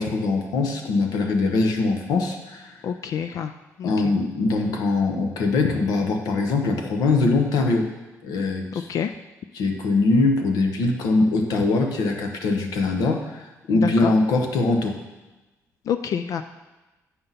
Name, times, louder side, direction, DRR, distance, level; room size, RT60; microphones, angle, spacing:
voice 1, 0.0-2.8 3.8-7.9 8.2-8.9 9.5-15.0, left 3 dB, 80° left, 4 dB, 1.0 m, -22 dB
voice 2, 2.8-3.5 3.8-3.9 8.7-9.1 13.7-14.1 15.9-16.4, left 8 dB, 65° left, 9 dB, 0.3 m, -27 dB
7.7 x 5.5 x 4.1 m, 1.1 s
cardioid pair, 95°, 6 cm